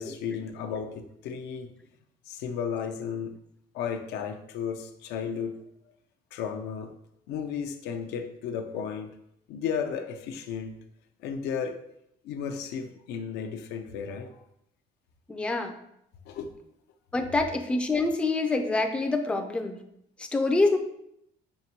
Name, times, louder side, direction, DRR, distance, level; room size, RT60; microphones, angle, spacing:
voice 1, 0.0-1.7 2.3-3.3 3.7-5.6 6.3-6.9 7.3-9.2 9.5-10.8 11.2-11.8 12.2-14.3 16.3-16.5, left 7 dB, 85° left, 6 dB, 0.4 m, -34 dB
voice 2, 15.3-15.7 17.1-19.8 20.2-20.8, left 2 dB, 5° left, 4 dB, 0.3 m, -26 dB
5.5 x 2.2 x 2.8 m, 0.76 s
cardioid pair, 110°, 17 cm